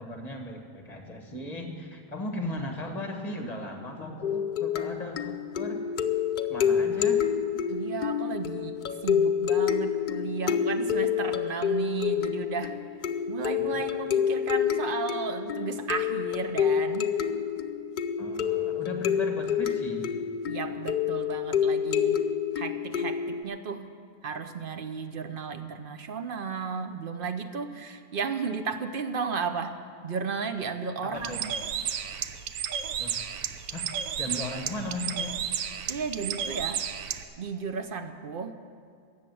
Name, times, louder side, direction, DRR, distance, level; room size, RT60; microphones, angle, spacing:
voice 1, 0.0-5.8 6.5-7.2 13.5-13.8 18.2-20.1 31.0-31.4 33.0-33.2 33.7-33.9 34.2-35.4, left 1 dB, 30° left, 3 dB, 1.4 m, -37 dB
sound 1, 4.2-23.4, left 8 dB, 70° left, 0.4 m, -28 dB
voice 2, 7.7-12.8 13.3-17.1 20.4-22.2 22.5-23.9 24.2-29.7 30.0-31.5 35.9-36.8 37.4-38.6, right 5 dB, 50° right, 8 dB, 0.7 m, -34 dB
Bird, 31.1-37.2, right 8 dB, 70° right, 1.0 m, -33 dB
13.5 x 7.7 x 9.2 m, 2.1 s
omnidirectional pair, 1.5 m